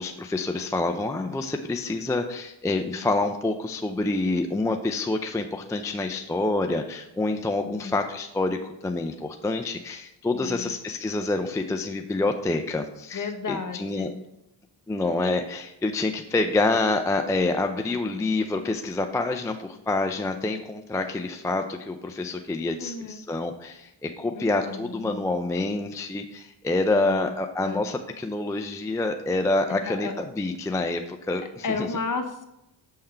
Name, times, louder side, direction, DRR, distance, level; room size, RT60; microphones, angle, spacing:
voice 1, 0.0-14.1 14.9-31.6, left 2 dB, 5° left, 4 dB, 0.4 m, -27 dB
voice 2, 7.6-7.9 10.3-10.7 13.1-14.2 22.8-23.2 24.3-25.3 26.9-27.3 27.6-27.8 29.7-30.1 31.6-32.4, left 4 dB, 40° left, 7 dB, 0.9 m, -33 dB
6.7 x 3.6 x 4.3 m, 0.88 s
cardioid pair, 65°, 48 cm